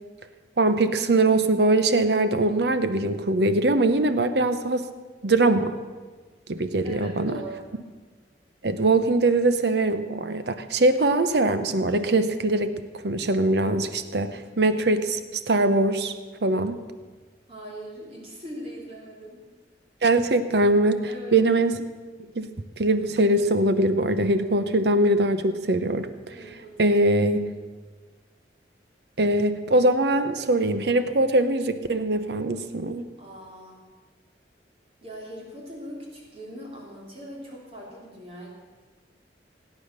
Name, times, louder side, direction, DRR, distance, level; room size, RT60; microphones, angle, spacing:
voice 1, 0.6-4.9 5.2-5.7 6.5-7.4 8.6-12.7 13.0-16.1 16.4-16.8 20.0-21.7 22.4-22.5 22.8-26.1 26.8-27.5 29.2-33.0, right 2 dB, 65° right, 10 dB, 0.8 m, -22 dB
voice 2, 6.8-7.8 17.5-19.5 21.1-21.4 26.3-26.9 27.4-27.5 33.2-33.9 35.0-38.5, equal, 35° right, -3 dB, 3.1 m, -41 dB
17.5 x 9.3 x 6.6 m, 1.4 s
head